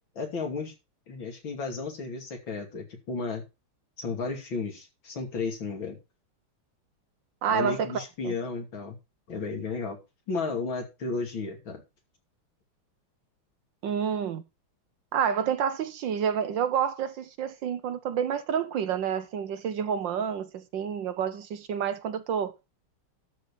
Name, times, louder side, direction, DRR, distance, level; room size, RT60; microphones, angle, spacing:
voice 1, 0.1-0.7 1.1-3.4 4.0-6.0 7.5-9.0 9.3-10.0 10.3-11.8, left 4 dB, 65° left, 3.3 m, -33 dB
voice 2, 7.4-8.3 13.8-14.4 15.1-22.5, right 7 dB, 70° right, 1.4 m, -29 dB
12.5 x 4.5 x 6.9 m
omnidirectional pair, 2.3 m